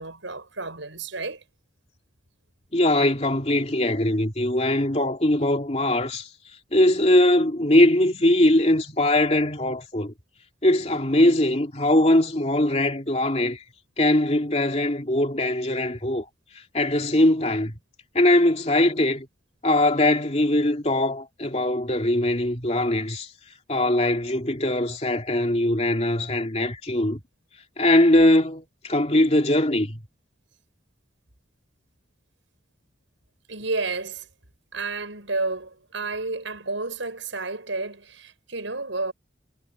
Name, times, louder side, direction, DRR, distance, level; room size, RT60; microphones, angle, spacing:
voice 1, 0.0-1.4 33.5-34.3 34.7-39.1, right 3 dB, 90° right, 6.6 m, -31 dB
voice 2, 2.7-6.3 6.7-10.1 10.6-13.6 14.0-16.2 16.5-17.7 18.1-19.3 19.6-23.3 23.7-27.2 27.8-30.0, left 1 dB, 35° left, 2.8 m, -21 dB
head